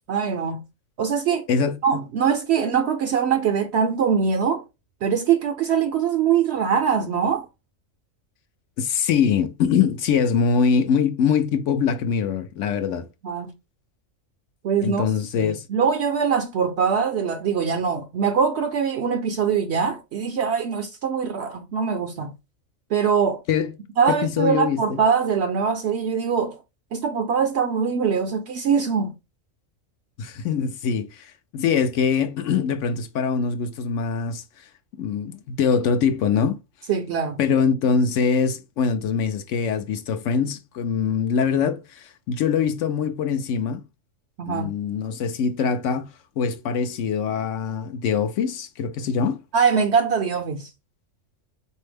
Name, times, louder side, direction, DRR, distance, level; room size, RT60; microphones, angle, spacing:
voice 1, 0.1-0.6 1.0-1.4 1.8-4.6 5.0-7.5 13.2-13.5 14.6-15.1 15.4-22.3 22.9-23.4 24.0-26.6 26.9-29.1 36.9-37.4 44.4-44.7 49.5-50.7, right 6 dB, 65° right, 0.7 m, -22 dB
voice 2, 1.5-1.8 8.8-13.1 14.8-15.6 23.5-23.7 24.1-25.0 30.2-34.7 35.0-36.6 37.4-43.8 44.5-46.1 46.4-49.4, left 6 dB, 70° left, 0.9 m, -23 dB
4.2 x 2.7 x 3.3 m
omnidirectional pair, 1.4 m